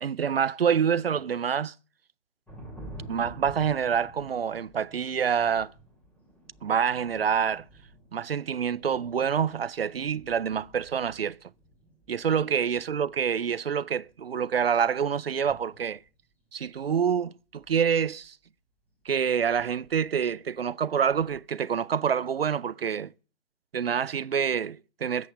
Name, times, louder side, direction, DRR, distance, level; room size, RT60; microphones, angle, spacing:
voice 1, 0.0-1.7 3.1-5.7 6.6-7.6 8.1-11.4 12.1-16.0 16.5-18.4 19.1-23.1 23.7-25.3, right 7 dB, 50° right, 0.6 m, -27 dB
sound 1, 2.5-16.1 16.5-16.9 17.5-18.3 18.9-21.4, right 1 dB, 5° left, 3.1 m, -50 dB
13.5 x 8.3 x 6.7 m
figure-of-eight pair, 140°, 37 cm